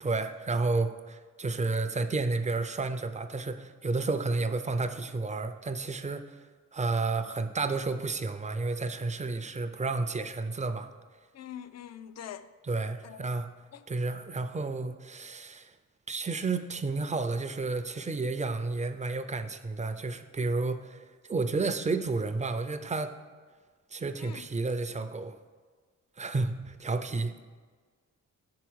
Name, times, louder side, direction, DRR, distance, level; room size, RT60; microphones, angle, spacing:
voice 1, 0.0-6.4 6.7-10.9 12.6-13.5 13.9-15.7 16.1-23.1 23.9-25.4 26.2-27.3, right 3 dB, 20° right, 0.4 m, -31 dB
voice 2, 11.3-12.5 13.0-13.3 13.7-13.8 24.2-24.5, left 10 dB, 55° left, 0.4 m, -44 dB
6.1 x 4.7 x 6.1 m
cardioid pair, 100°, 32 cm